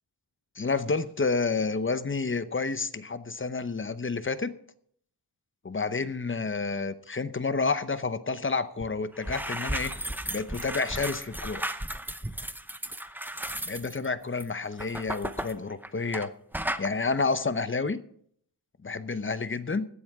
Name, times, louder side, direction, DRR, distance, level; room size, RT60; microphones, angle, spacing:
voice 1, 0.6-4.5 5.6-9.9 10.3-11.6 13.7-16.3 16.8-18.0 18.8-19.9, left 4 dB, 30° left, 13 dB, 0.8 m, -29 dB
sound 1, 8.8-8.9 9.1-16.3 16.5-16.9, right 1 dB, 5° right, 0.8 m, -35 dB
17.0 x 12.0 x 3.6 m, 0.63 s
wide cardioid pair, 100°, 41 cm